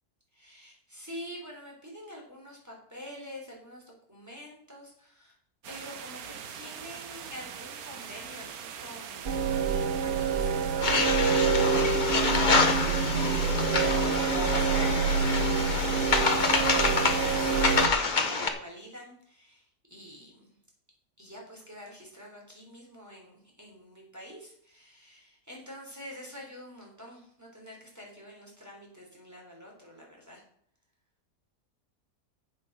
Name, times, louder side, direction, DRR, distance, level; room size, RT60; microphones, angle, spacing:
voice 1, 0.3-3.8 4.1-5.3 5.7-9.3 9.6-13.0 13.3-20.5 21.2-30.4, equal, 10° right, -2 dB, 3.6 m, -47 dB
sound 1, 5.6-17.9, right 7 dB, 70° right, 1.4 m, -42 dB
sound 2, 9.2-17.9, right 5 dB, 45° right, 1.1 m, -27 dB
sound 3, 10.8-18.5, left 4 dB, 35° left, 1.2 m, -27 dB
8.4 x 7.7 x 6.2 m, 0.66 s
omnidirectional pair, 1.6 m